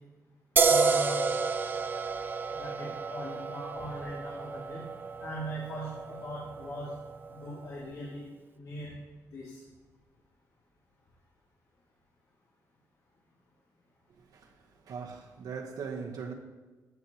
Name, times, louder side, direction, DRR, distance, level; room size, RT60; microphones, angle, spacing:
voice 1, 0.6-1.3 2.6-4.8 5.2-6.9 7.3-8.3 8.5-8.9 9.3-9.6, equal, 60° left, 2.5 m, -39 dB
sound 1, 0.6-7.9, right 4 dB, 30° right, 0.5 m, -31 dB
voice 2, 14.2-16.3, right 6 dB, 80° right, 1.1 m, -40 dB
15.0 x 9.4 x 3.0 m
wide cardioid pair, 165°, 7 cm